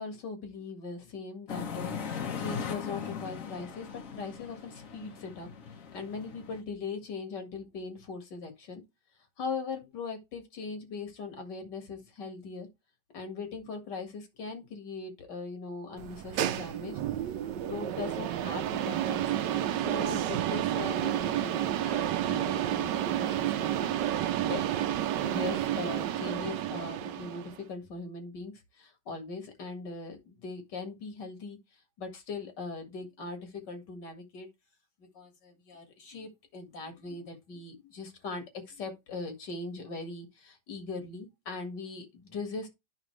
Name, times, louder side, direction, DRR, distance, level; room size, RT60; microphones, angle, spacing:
voice 1, 0.0-5.5 5.9-8.8 9.4-12.7 13.1-17.0 17.6-24.6 25.2-34.5 35.1-42.7, left 4 dB, 75° left, 2.5 m, -40 dB
sound 1, 1.5-6.6, left 6 dB, 55° left, 1.3 m, -39 dB
sound 2, 16.0-27.6, right 11 dB, 80° right, 1.3 m, -30 dB
9.9 x 5.5 x 3.2 m
omnidirectional pair, 1.9 m